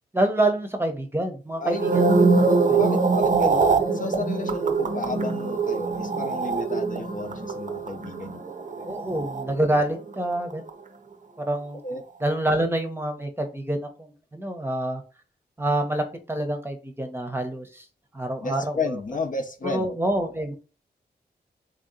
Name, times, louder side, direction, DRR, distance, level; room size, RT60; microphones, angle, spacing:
voice 1, 0.1-2.0 2.5-2.8 8.8-10.6 11.5-11.8 12.2-15.0 15.6-17.8 18.1-19.0 19.7-20.6, right 1 dB, 15° right, 0.8 m, -27 dB
sound 1, 1.6-10.1 10.3-10.7, right 4 dB, 45° right, 0.6 m, -23 dB
voice 2, 2.5-8.9 11.8-12.0 18.4-19.9, left 4 dB, 50° left, 0.6 m, -32 dB
3.5 x 2.8 x 3.7 m
wide cardioid pair, 80°, 18 cm